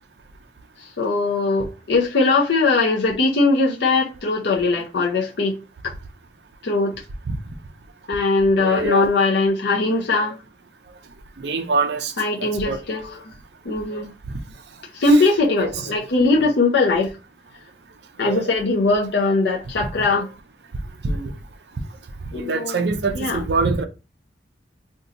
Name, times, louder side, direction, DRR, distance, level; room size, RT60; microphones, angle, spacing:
voice 1, 1.0-5.6 5.8-5.9 6.6-6.9 8.1-10.4 12.2-13.3 13.6-14.1 14.9-17.1 18.2-20.3 22.3-22.8 23.1-23.4, left 3 dB, 65° left, 0.6 m, -20 dB
voice 2, 8.6-9.1 11.4-12.1 12.4-12.8 15.1-15.2 15.6-15.7 16.3-16.5 18.2-18.5 21.0-21.3 22.3-23.8, right 3 dB, 60° right, 0.5 m, -24 dB
2.6 x 2.2 x 3.8 m
head